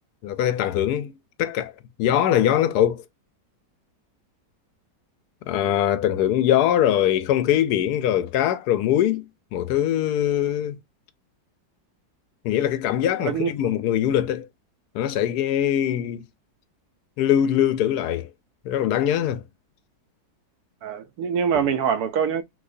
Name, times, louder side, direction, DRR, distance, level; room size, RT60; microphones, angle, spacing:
voice 1, 0.2-1.1 1.4-1.7 2.0-3.0 5.5-9.2 9.5-10.8 12.4-14.5 14.9-16.2 17.2-18.3 18.7-19.4, left 11 dB, 70° left, 1.0 m, -22 dB
voice 2, 13.2-13.5 20.8-22.4, right 7 dB, 65° right, 1.1 m, -24 dB
6.0 x 2.7 x 2.6 m
omnidirectional pair, 1.9 m